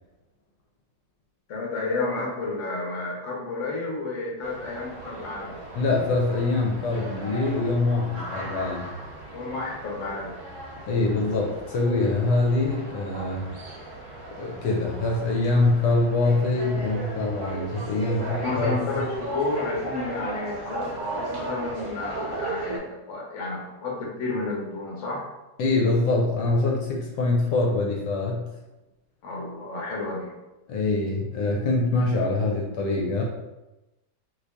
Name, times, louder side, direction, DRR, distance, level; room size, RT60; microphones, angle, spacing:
voice 1, 1.5-5.6 9.2-10.3 18.1-25.2 29.2-30.3, left 3 dB, 55° left, -2 dB, 1.0 m, -31 dB
sound 1, 4.4-22.8, right 2 dB, 55° right, 1.2 m, -37 dB
voice 2, 5.7-8.9 10.9-13.5 14.4-18.8 25.6-28.5 30.7-33.2, left 2 dB, 75° left, -1 dB, 1.2 m, -24 dB
3.0 x 2.6 x 3.3 m, 1.0 s
omnidirectional pair, 1.9 m